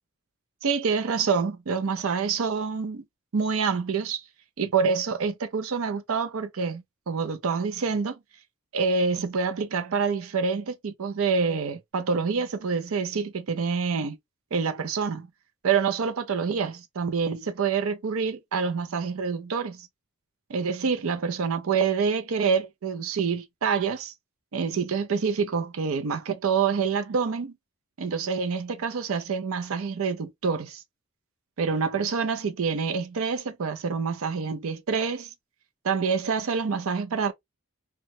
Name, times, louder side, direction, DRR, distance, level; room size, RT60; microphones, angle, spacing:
voice 1, 0.6-3.0 3.3-4.2 4.6-8.2 8.7-14.2 14.5-15.3 15.6-19.9 20.5-24.1 24.5-27.5 28.0-30.8 31.6-35.3 35.8-37.3, right 5 dB, 75° right, 0.5 m, -27 dB
2.9 x 2.1 x 2.9 m
head